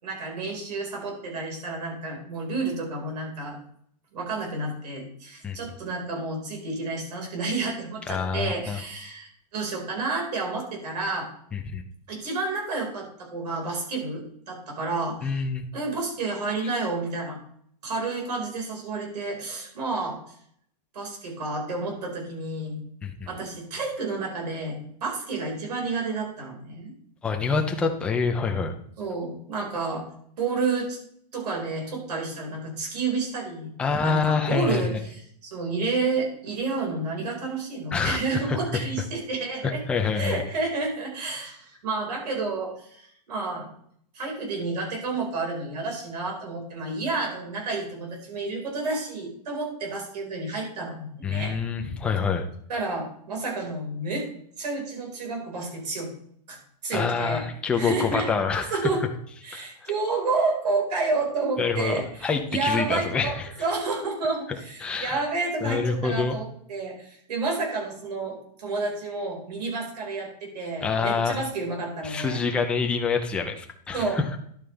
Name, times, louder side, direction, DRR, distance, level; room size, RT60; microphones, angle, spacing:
voice 1, 0.0-3.6 4.1-11.3 12.1-15.4 15.7-17.4 17.8-20.2 20.9-22.8 23.3-26.9 29.0-30.0 30.4-31.0 31.3-33.7 34.0-39.8 40.1-43.7 44.1-51.5 52.7-54.3 54.6-56.1 56.5-57.4 57.7-58.3 58.7-59.0 59.4-72.4 73.9-74.2, right 3 dB, 75° right, 0 dB, 4.9 m, -30 dB
voice 2, 8.1-8.8 11.5-11.8 15.2-15.6 23.0-23.1 27.2-28.7 33.8-34.8 37.9-38.2 38.5-38.6 39.9-40.4 51.2-52.5 56.9-58.7 59.5-59.9 61.6-63.5 64.8-65.2 65.6-66.4 70.8-71.4 72.0-74.2, left 5 dB, 5° left, 4 dB, 0.5 m, -26 dB
11.0 x 8.8 x 3.4 m, 0.64 s
supercardioid pair, 175°, 21 cm